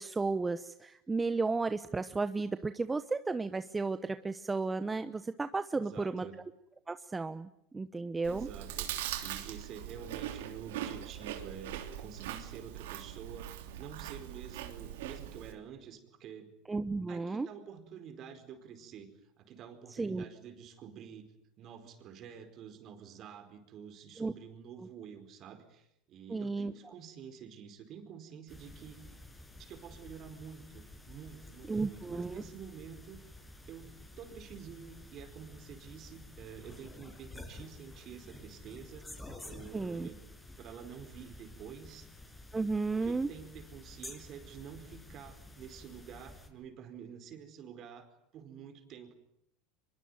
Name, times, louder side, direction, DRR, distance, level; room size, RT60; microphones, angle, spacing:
voice 1, 0.0-6.3 6.9-8.5 16.7-17.5 20.0-20.3 24.2-24.3 26.3-26.7 31.7-32.4 39.7-40.1 42.5-43.3, right 3 dB, 15° right, 11 dB, 0.9 m, -33 dB
voice 2, 5.7-6.4 8.2-16.5 17.1-19.1 19.4-21.3 21.6-29.0 29.6-33.2 33.7-40.2 40.6-42.1 42.9-49.2, right 8 dB, 45° right, 8 dB, 4.6 m, -49 dB
Chewing mastication, 8.2-15.5, right 11 dB, 80° right, 3.0 m, -41 dB
sound 1, 28.5-46.5, left 2 dB, 10° left, 6.0 m, -51 dB
24.5 x 22.0 x 9.4 m, 0.79 s
supercardioid pair, 110°, 0 cm